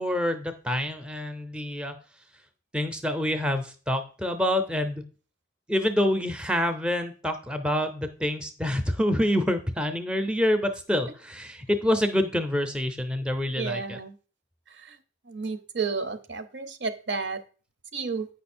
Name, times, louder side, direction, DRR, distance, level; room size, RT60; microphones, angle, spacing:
voice 1, 0.0-1.9 2.7-5.0 5.7-14.0, left 1 dB, 5° right, 8 dB, 0.6 m, -27 dB
voice 2, 13.6-14.1 14.9-15.0 15.3-17.4 17.9-18.3, right 4 dB, 55° right, 11 dB, 0.8 m, -31 dB
9.0 x 5.5 x 4.4 m, 0.37 s
head